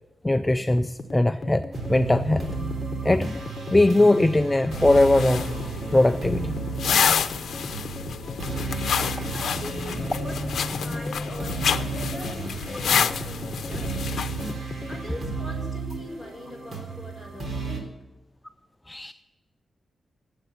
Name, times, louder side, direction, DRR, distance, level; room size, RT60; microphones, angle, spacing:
voice 1, 0.2-2.5 3.0-3.3 3.7-5.5 5.9-6.6 18.9-19.1, left 2 dB, 10° left, 9 dB, 0.4 m, -20 dB
sound 1, 0.8-15.1, left 3 dB, 35° left, 1.4 m, -38 dB
sound 2, 1.7-17.8, right 3 dB, 50° right, 3.6 m, -33 dB
sound 3, 4.7-14.5, left 7 dB, 80° left, 0.7 m, -29 dB
voice 2, 9.3-10.5 10.8-14.2 14.9-17.9, left 1 dB, 20° right, 0 dB, 5.9 m, -40 dB
18.5 x 8.1 x 7.1 m, 1.1 s
wide cardioid pair, 140°, 0 cm